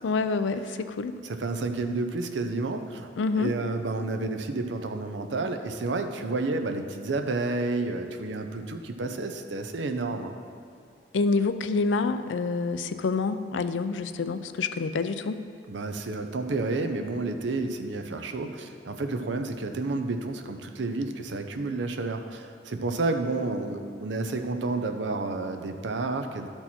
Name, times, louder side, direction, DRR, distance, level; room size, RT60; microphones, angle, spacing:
voice 1, 0.0-1.2 3.2-3.5 11.1-15.4, left 4 dB, 90° left, 11 dB, 0.4 m, -27 dB
voice 2, 1.2-3.1 3.4-10.4 15.7-26.5, right 3 dB, 80° right, 6 dB, 0.6 m, -30 dB
12.0 x 4.5 x 4.3 m, 2.3 s
head